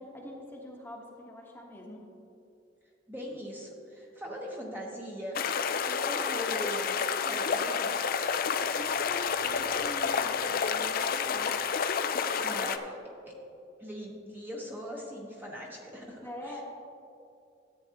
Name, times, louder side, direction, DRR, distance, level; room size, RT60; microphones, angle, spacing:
voice 1, 0.0-2.0 8.7-11.5 12.4-12.8 16.2-16.6, left 1 dB, 10° left, -2 dB, 1.2 m, -44 dB
voice 2, 3.1-5.4 5.8-7.9 12.3-12.8 13.3-13.4 13.8-16.6, equal, 10° right, -2 dB, 1.1 m, -40 dB
sound 1, 5.3-12.8, left 6 dB, 50° left, 0.4 m, -29 dB
13.5 x 8.7 x 2.9 m, 2.6 s
head